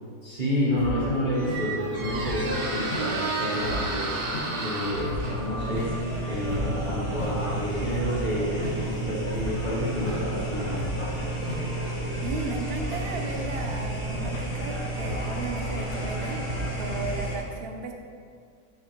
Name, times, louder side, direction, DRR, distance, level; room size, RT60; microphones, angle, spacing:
voice 1, 0.2-4.2 4.6-5.9 6.3-10.8, equal, 30° right, -9 dB, 1.3 m, -29 dB
sound 1, 0.8-8.1 8.6-8.7 9.3-9.5 10.0-17.2, left 1 dB, 45° left, 1.6 m, -36 dB
Squeak, 0.8-9.5, right 2 dB, 75° right, 1.7 m, -34 dB
sound 2, 5.1-17.4, right 1 dB, 20° left, 1.2 m, -32 dB
voice 2, 12.2-16.4 16.8-17.9, right 3 dB, 50° right, 2 dB, 0.7 m, -35 dB
11.5 x 4.7 x 3.1 m, 2.1 s
omnidirectional pair, 1.9 m